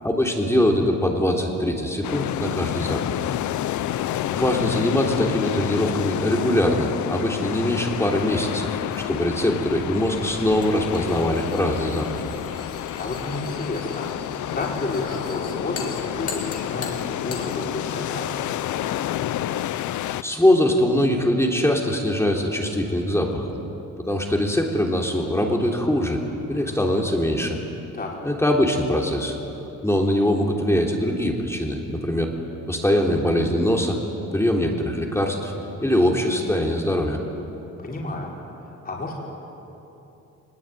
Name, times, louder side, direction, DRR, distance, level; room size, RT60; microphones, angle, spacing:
voice 1, 0.0-3.0 4.3-12.1 20.2-23.6 24.0-26.2 26.5-27.6 28.2-29.4 29.8-32.3 32.7-34.0 34.3-35.5 35.8-37.2, left 1 dB, 10° left, 0 dB, 3.6 m, -22 dB
sound 1, 2.0-20.2, left 12 dB, 75° left, 0.8 m, -29 dB
sound 2, 8.9-17.6, left 4 dB, 50° left, 4.3 m, -40 dB
voice 2, 13.0-14.1 14.5-18.6 26.5-26.8 27.9-28.1 37.8-38.3 38.7-39.2, left 2 dB, 30° left, -3 dB, 5.6 m, -31 dB
23.0 x 21.0 x 9.3 m, 3.0 s
cardioid pair, 90°, 30 cm